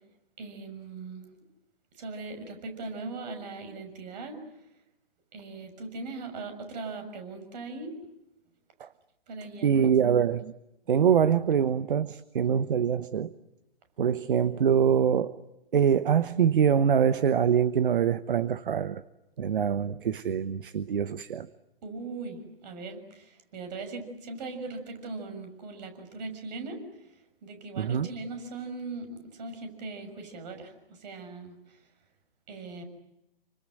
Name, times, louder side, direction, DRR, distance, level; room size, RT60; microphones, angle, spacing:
voice 1, 0.4-1.2 2.0-4.4 5.3-7.9 9.3-9.9 21.8-26.8 27.4-31.6 32.5-32.8, right 3 dB, 45° right, 6.8 m, -39 dB
voice 2, 9.6-10.5 10.9-13.3 14.0-15.4 15.7-19.0 19.4-21.5 27.8-28.1, right 8 dB, 65° right, 1.1 m, -24 dB
28.5 x 25.0 x 7.7 m
figure-of-eight pair, 130°, 29 cm